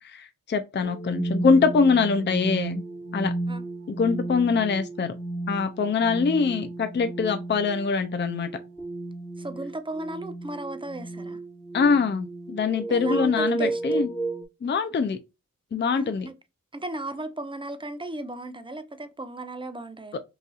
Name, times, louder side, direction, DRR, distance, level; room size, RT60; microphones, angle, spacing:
voice 1, 0.0-2.8 3.1-3.3 3.9-5.1 5.5-8.5 11.7-14.1 14.6-15.2 15.7-16.3 20.1-20.2, left 5 dB, 35° left, 0.5 m, -23 dB
sound 1, 0.8-14.4, right 2 dB, 10° left, 1.2 m, -33 dB
voice 2, 9.4-11.4 12.9-14.1 15.9-16.3 16.7-20.2, right 1 dB, 15° right, 0.6 m, -36 dB
4.0 x 2.7 x 2.3 m
cardioid pair, 45°, 33 cm